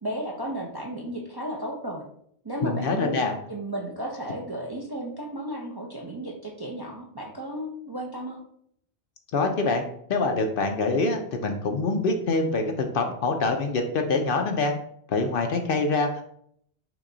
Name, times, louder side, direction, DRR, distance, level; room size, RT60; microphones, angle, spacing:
voice 1, 0.0-2.1 2.4-8.4, right 1 dB, 30° right, -1 dB, 0.5 m, -34 dB
voice 2, 2.6-3.3 9.3-9.8 10.1-14.7 15.1-16.2, left 3 dB, 60° left, 5 dB, 0.7 m, -25 dB
5.9 x 2.3 x 3.8 m, 0.67 s
omnidirectional pair, 1.1 m